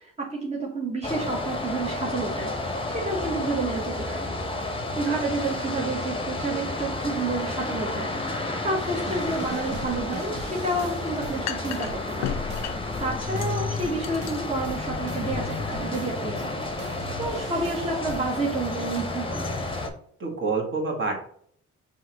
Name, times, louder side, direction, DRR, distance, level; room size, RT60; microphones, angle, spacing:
voice 1, 0.0-4.3 5.0-12.4 13.0-19.5, right 2 dB, 20° right, -2 dB, 1.0 m, -30 dB
sound 1, 1.0-19.9, left 2 dB, 15° left, 0.8 m, -31 dB
sound 2, 8.8-13.0 13.4-16.5 16.8-18.4, right 4 dB, 85° right, 1.2 m, -41 dB
sound 3, 9.2-16.7, left 10 dB, 60° left, 0.5 m, -38 dB
voice 2, 20.2-21.2, right 4 dB, 40° right, 1 dB, 1.6 m, -27 dB
5.5 x 2.7 x 2.9 m, 0.62 s
cardioid pair, 90°, 30 cm